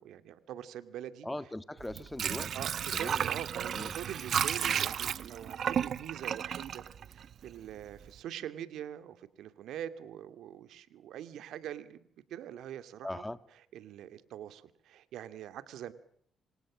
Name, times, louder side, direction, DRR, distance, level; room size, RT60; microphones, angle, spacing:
voice 1, 0.0-1.3 2.5-6.8 7.1-12.0 12.3-13.2 13.7-15.9, right 10 dB, 80° right, 2.4 m, -43 dB
voice 2, 1.2-2.6 2.9-3.3 3.7-3.9 13.0-13.4, left 1 dB, 10° left, 1.9 m, -40 dB
Water / Sink (filling or washing), 1.8-7.7 8.0-8.1, right 8 dB, 60° right, 1.1 m, -33 dB
27.5 x 27.0 x 6.3 m
cardioid pair, 90°, 0 cm